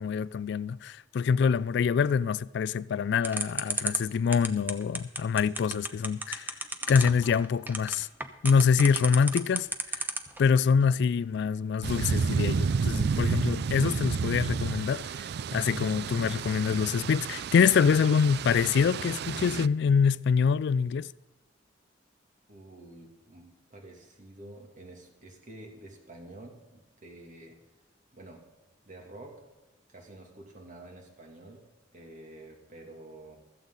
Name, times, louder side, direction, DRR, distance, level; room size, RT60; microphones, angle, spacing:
voice 1, 0.0-6.5 6.9-8.1 8.4-10.1 10.4-21.1, left 6 dB, 65° left, 0.3 m, -25 dB
sound 1, 3.2-10.4, right 2 dB, 10° right, 0.9 m, -31 dB
sound 2, 11.8-19.7, right 5 dB, 60° right, 0.4 m, -31 dB
voice 2, 22.5-27.6 28.1-28.4 28.8-29.4 29.9-31.7 31.9-33.4, right 1 dB, 45° right, 2.6 m, -49 dB
15.5 x 14.0 x 3.9 m
head